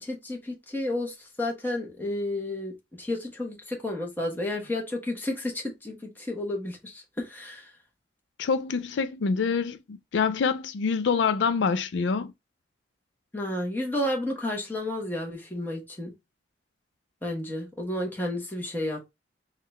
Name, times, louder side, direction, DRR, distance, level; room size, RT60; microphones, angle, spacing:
voice 1, 0.0-2.7 3.0-7.7 13.3-16.1 17.2-19.1, left 1 dB, 10° left, 1.0 m, -31 dB
voice 2, 8.4-12.3, left 5 dB, 80° left, 0.4 m, -26 dB
3.7 x 2.3 x 4.0 m
head